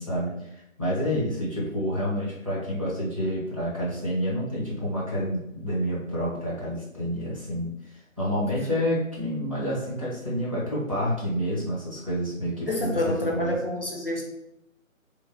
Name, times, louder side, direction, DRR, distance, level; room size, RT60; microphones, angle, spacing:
voice 1, 0.0-13.6, equal, 25° right, -8 dB, 0.6 m, -29 dB
voice 2, 12.7-14.2, left 1 dB, 45° left, -1 dB, 0.5 m, -27 dB
3.1 x 2.0 x 2.5 m, 0.84 s
figure-of-eight pair, 160°, 41 cm